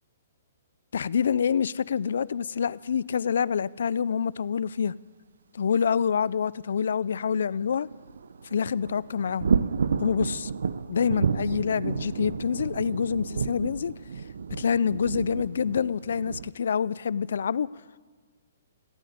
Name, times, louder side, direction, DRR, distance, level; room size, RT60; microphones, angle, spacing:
voice 1, 0.9-4.9 5.5-7.9 8.5-9.5 10.0-10.5 10.9-13.9 14.5-17.7, left 7 dB, 70° left, 22 dB, 0.4 m, -26 dB
sound 1, 7.3-16.5, right 5 dB, 90° right, 0.5 m, -31 dB
15.5 x 9.4 x 9.3 m, 1.5 s
hypercardioid pair, 170°, 0 cm